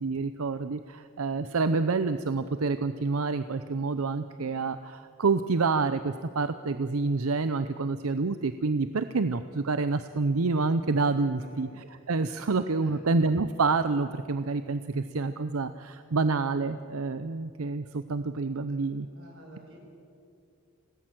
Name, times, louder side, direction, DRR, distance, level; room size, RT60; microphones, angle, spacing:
voice 1, 0.0-11.7 12.1-19.1, right 4 dB, 90° right, 11 dB, 0.7 m, -28 dB
voice 2, 11.4-11.7 12.8-13.0 19.1-19.8, right 1 dB, 60° right, -1 dB, 7.6 m, -50 dB
27.0 x 18.5 x 7.7 m, 2.4 s
head